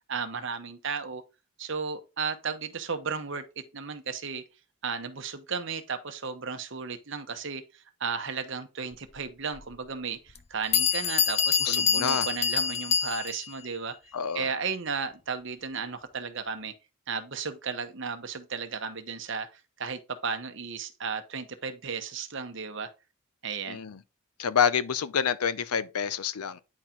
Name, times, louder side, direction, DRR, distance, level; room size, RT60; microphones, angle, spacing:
voice 1, 0.1-1.2 1.6-4.4 4.8-14.0 14.3-16.7 17.1-22.9 23.4-23.8, right 5 dB, 55° right, 0.9 m, -34 dB
Bell, 9.6-9.7 10.4-10.5 10.7-13.5, left 7 dB, 30° left, 0.4 m, -26 dB
voice 2, 11.6-12.3 14.1-14.5 23.7-24.0 24.4-26.6, left 7 dB, 90° left, 0.6 m, -28 dB
9.6 x 4.4 x 3.8 m
head